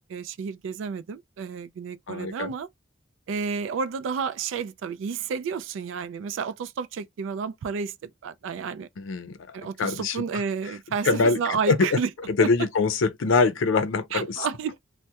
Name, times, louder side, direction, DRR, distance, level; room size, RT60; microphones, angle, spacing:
voice 1, 0.1-2.7 3.3-8.9 9.5-12.1 12.4-12.7 14.1-14.8, right 6 dB, 80° right, 0.3 m, -31 dB
voice 2, 2.1-2.5 9.0-9.3 9.8-10.2 11.0-11.4 11.7-11.8 12.4-14.4, left 4 dB, 90° left, 0.5 m, -23 dB
2.2 x 2.1 x 2.7 m
head